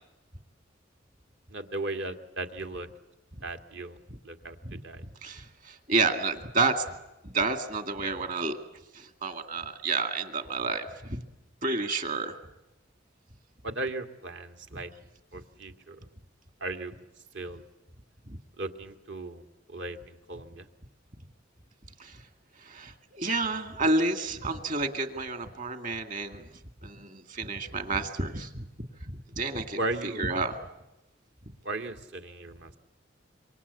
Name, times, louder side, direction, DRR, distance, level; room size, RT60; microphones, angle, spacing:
voice 1, 1.5-2.9 3.4-4.0 4.2-4.6 4.8-5.0 13.6-14.9 15.3-16.1 16.6-17.0 17.3-17.6 18.6-20.7 29.8-30.3 31.6-32.8, right 2 dB, 70° right, 6 dB, 2.1 m, -36 dB
voice 2, 5.2-6.8 7.2-8.6 8.9-11.2 11.6-12.4 18.3-18.4 22.0-22.2 22.6-26.5 26.8-28.6 29.1-29.8 30.2-30.6, right 3 dB, 45° right, 7 dB, 2.2 m, -30 dB
26.5 x 24.5 x 8.4 m, 0.96 s
head